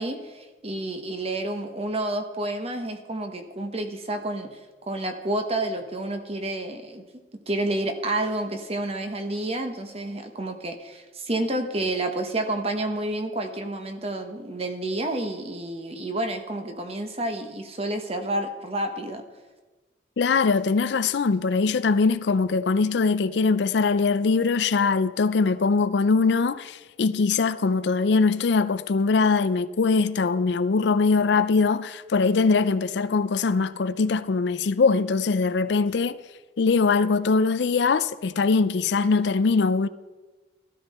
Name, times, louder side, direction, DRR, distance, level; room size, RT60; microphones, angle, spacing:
voice 1, 0.0-7.0 7.5-19.2, right 1 dB, 30° right, 1.1 m, -29 dB
voice 2, 20.2-36.2 36.6-39.9, left 4 dB, 65° left, 0.4 m, -22 dB
13.5 x 12.5 x 4.3 m
head